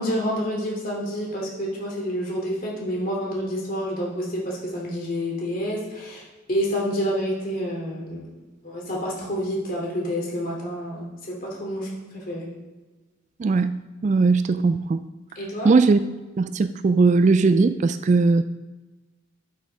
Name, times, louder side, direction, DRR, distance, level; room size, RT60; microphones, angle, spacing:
voice 1, 0.0-8.3 8.6-12.5 15.3-15.7, equal, 45° left, -3 dB, 2.9 m, -28 dB
voice 2, 13.4-13.7 14.0-15.0 15.6-16.0 16.4-18.4, right 4 dB, 40° right, 12 dB, 0.3 m, -19 dB
12.0 x 6.5 x 3.6 m, 1.2 s
head